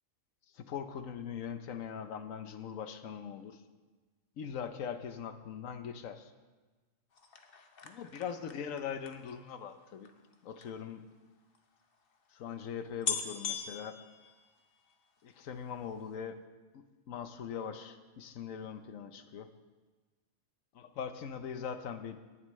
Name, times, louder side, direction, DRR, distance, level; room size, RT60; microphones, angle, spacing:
voice 1, 0.5-3.6 4.4-6.3 7.8-10.1 10.4-11.0 12.3-14.0 15.2-16.4 16.7-19.5 20.7-22.2, left 7 dB, 80° left, 9 dB, 1.1 m, -41 dB
sound 1, 7.1-10.7 11.5-11.6 11.8-11.9 12.5-12.6 13.0-14.9 15.3-15.8 16.0-16.1, left 6 dB, 45° left, 1.1 m, -41 dB
17.5 x 11.0 x 3.2 m, 1.3 s
omnidirectional pair, 1.4 m